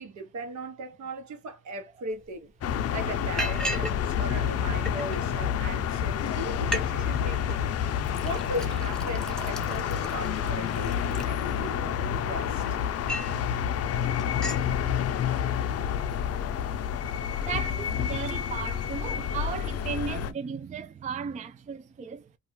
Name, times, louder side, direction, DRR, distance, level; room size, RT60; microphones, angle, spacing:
voice 1, 0.0-2.5 2.9-7.7 8.2-12.6, right 1 dB, 70° right, 1.1 m, -38 dB
Liquid, 2.2-2.3 2.6-2.9 3.4-4.0 4.3-5.2 5.8-5.9 6.2-6.3 6.6-6.9 7.1-7.6 8.0-11.9 12.4-13.4 13.8-13.9 14.2-14.7, equal, ahead, 0.8 m, -36 dB
sound 1, 2.6-20.3, left 8 dB, 55° left, 0.5 m, -29 dB
voice 2, 17.4-22.4, right 6 dB, 25° right, 0.4 m, -36 dB
2.4 x 2.4 x 3.0 m
cardioid pair, 90°, 30 cm